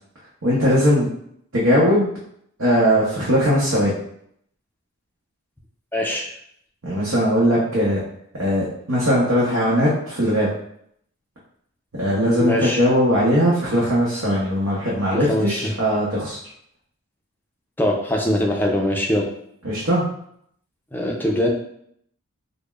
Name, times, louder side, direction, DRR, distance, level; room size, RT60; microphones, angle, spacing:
voice 1, 0.4-1.1 1.5-2.1 2.6-3.9 6.8-8.0 8.4-10.5 11.9-16.4 19.6-20.1, equal, 70° right, -7 dB, 0.8 m, -19 dB
voice 2, 5.9-6.3 12.3-12.8 15.1-15.7 17.8-19.3 20.9-21.5, left 1 dB, 10° left, 0 dB, 0.4 m, -22 dB
5.1 x 2.1 x 2.4 m, 0.69 s
head